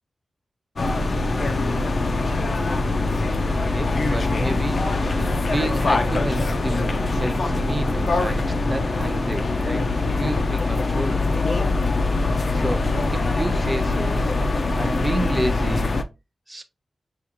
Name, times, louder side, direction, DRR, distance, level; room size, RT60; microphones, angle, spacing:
sound 1, 0.8-16.0, left 2 dB, 45° left, 0.5 m, -23 dB
voice 1, 3.4-5.0 5.4-11.4 12.5-14.2 14.8-16.0 16.5-16.6, right 1 dB, 20° right, 0.6 m, -30 dB
5.8 x 2.4 x 2.8 m
wide cardioid pair, 150°, 0 cm